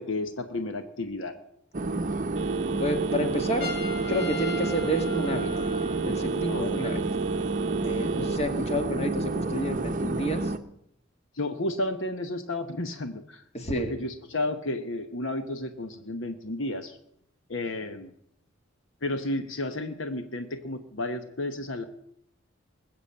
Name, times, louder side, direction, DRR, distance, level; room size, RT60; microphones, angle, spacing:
voice 1, 0.0-1.3 6.5-6.7 11.4-13.4 13.7-17.0 17.5-18.1 19.0-21.8, left 2 dB, 65° left, 7 dB, 1.1 m, -32 dB
sound 1, 1.7-10.6, right 2 dB, 40° right, 0.8 m, -30 dB
Telephone, 2.4-8.4, right 6 dB, 70° right, 0.7 m, -33 dB
voice 2, 2.8-3.7 4.1-5.5 6.0-7.0 7.8-10.5 13.5-13.9, equal, 30° left, 5 dB, 1.9 m, -30 dB
Trumpet, 3.6-6.3, left 2 dB, 50° left, 2.3 m, -38 dB
21.0 x 7.4 x 8.6 m, 0.74 s
head